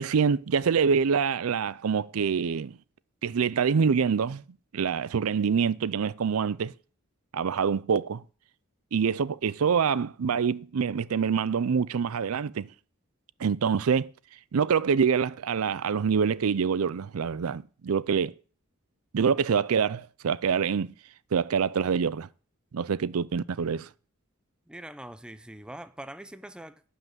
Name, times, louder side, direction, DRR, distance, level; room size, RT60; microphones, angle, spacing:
voice 1, 0.0-2.8 3.2-4.4 4.7-6.7 7.3-8.2 8.9-12.7 13.4-14.1 14.5-18.3 19.1-20.9 21.3-22.3 22.7-23.9, right 6 dB, 80° right, 0.5 m, -25 dB
voice 2, 24.7-26.8, right 1 dB, 5° right, 0.5 m, -43 dB
12.0 x 5.6 x 9.1 m
head